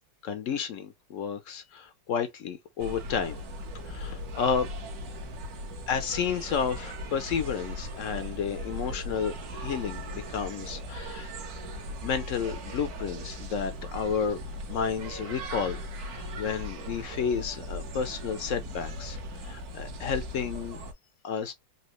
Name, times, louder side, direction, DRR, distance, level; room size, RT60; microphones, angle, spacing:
voice 1, 0.2-3.4 3.8-4.7 5.9-11.3 12.0-19.2 19.4-20.8 21.2-21.5, left 6 dB, 75° left, 0.7 m, -31 dB
sound 1, 2.8-20.9, equal, 60° right, 1.4 m, -38 dB
4.1 x 2.8 x 3.0 m
omnidirectional pair, 1.9 m